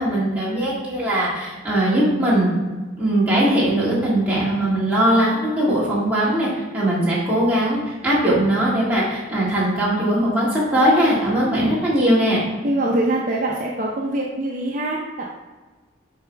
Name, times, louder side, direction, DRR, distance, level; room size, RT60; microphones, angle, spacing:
voice 1, 0.0-2.5 3.0-12.4, right 1 dB, 5° right, -8 dB, 2.0 m, -20 dB
voice 2, 11.4-11.8 12.6-15.2, right 1 dB, 40° right, -2 dB, 0.7 m, -24 dB
7.2 x 4.8 x 3.4 m, 1.3 s
head